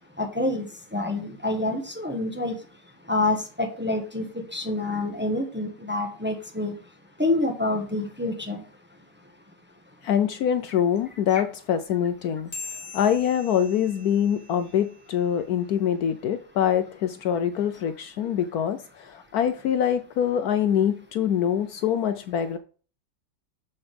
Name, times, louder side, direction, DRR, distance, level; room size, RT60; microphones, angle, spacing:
voice 1, 0.2-0.7 0.9-2.6 3.1-4.2 4.5-6.7 7.2-8.6, left 2 dB, 5° right, 1.1 m, -27 dB
voice 2, 10.0-12.5 12.9-22.6, left 9 dB, 70° left, 1.0 m, -24 dB
sound 1, 12.5-15.4, left 3 dB, 20° left, 2.1 m, -42 dB
7.0 x 6.9 x 3.4 m
omnidirectional pair, 1.8 m